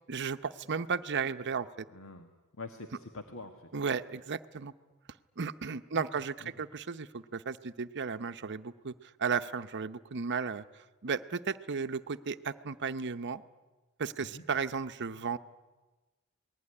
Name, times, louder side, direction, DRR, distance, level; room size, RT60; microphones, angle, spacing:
voice 1, 0.1-1.8 3.7-4.7 5.4-8.9 9.2-10.6 11.0-13.4 14.0-15.4, right 5 dB, 55° right, 11 dB, 0.8 m, -34 dB
voice 2, 1.9-2.3 2.6-3.7 5.9-6.0 6.4-6.5 14.2-14.4, left 3 dB, 65° left, 6 dB, 1.6 m, -45 dB
27.5 x 20.0 x 9.8 m, 1.2 s
head